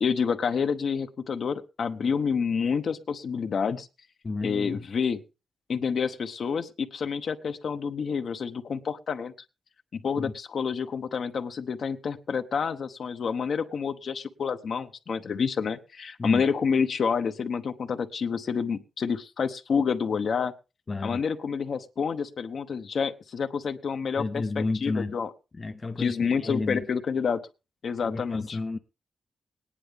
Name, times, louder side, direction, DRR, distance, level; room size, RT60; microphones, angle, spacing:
voice 1, 0.0-3.9 4.4-5.2 5.7-9.3 9.9-20.5 21.0-25.3 26.0-27.4 27.8-28.6, left 6 dB, 55° left, 0.9 m, -28 dB
voice 2, 4.2-4.8 10.2-10.3 16.2-16.4 20.9-21.2 24.2-25.2 25.5-26.9 28.0-28.8, left 3 dB, 25° left, 0.6 m, -31 dB
19.5 x 10.0 x 3.5 m
wide cardioid pair, 165°, 0 cm